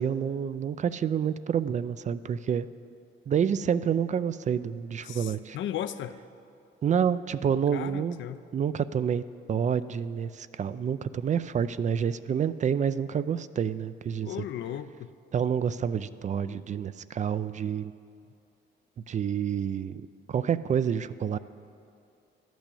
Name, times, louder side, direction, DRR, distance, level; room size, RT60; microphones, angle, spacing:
voice 1, 0.0-2.7 3.3-5.6 6.8-8.2 8.5-9.2 9.5-14.3 15.3-17.9 19.1-21.4, right 8 dB, 40° right, 14 dB, 0.4 m, -28 dB
voice 2, 5.0-6.2 7.7-8.4 14.2-15.1, left 10 dB, 70° left, 12 dB, 0.5 m, -36 dB
12.0 x 6.2 x 8.3 m, 2.6 s
cardioid pair, 90°, 20 cm